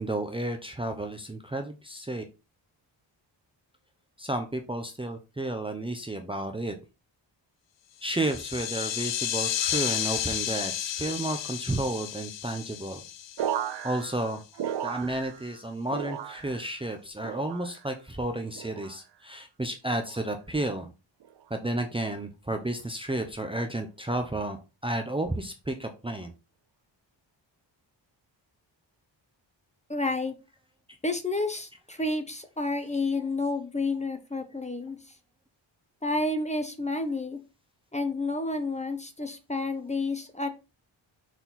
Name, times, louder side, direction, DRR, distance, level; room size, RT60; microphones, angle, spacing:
voice 1, 0.0-2.2 4.2-6.7 8.0-13.0 13.8-14.4 14.8-20.9 21.5-24.6 24.8-26.3 33.1-33.3, right 1 dB, 10° right, 4 dB, 0.8 m, -32 dB
sound 1, 8.0-14.1, left 11 dB, 70° left, 0.7 m, -32 dB
sound 2, 13.4-15.6 15.9-16.7 17.2-17.9 18.5-19.0 19.9-20.3 21.2-21.5, right 10 dB, 60° right, 0.7 m, -35 dB
voice 2, 29.9-30.3 31.0-35.0 36.0-37.4 37.9-40.5, left 2 dB, 15° left, 8 dB, 1.0 m, -30 dB
6.3 x 4.3 x 4.1 m, 0.28 s
wide cardioid pair, 110°, 46 cm